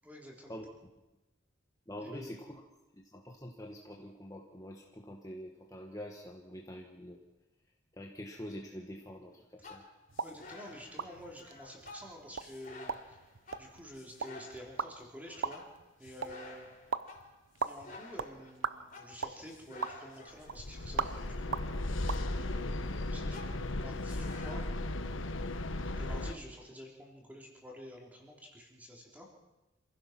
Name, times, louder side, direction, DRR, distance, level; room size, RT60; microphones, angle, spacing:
voice 1, 0.0-0.6 2.0-2.4 10.2-13.2 13.6-15.6 16.0-16.6 17.7-21.6 22.3-24.7 25.9-29.3, equal, 10° right, -1 dB, 3.7 m, -49 dB
voice 2, 1.9-2.6 3.1-7.2 7.9-9.8, equal, 15° left, 0 dB, 1.5 m, -45 dB
sound 1, 9.6-22.9 23.3-24.7, left 3 dB, 45° left, 3.6 m, -52 dB
sound 2, 10.1-22.2, right 5 dB, 80° right, 0.8 m, -41 dB
sound 3, 20.5-26.4, left 2 dB, 80° left, 1.3 m, -36 dB
27.5 x 16.0 x 6.1 m, 1.0 s
head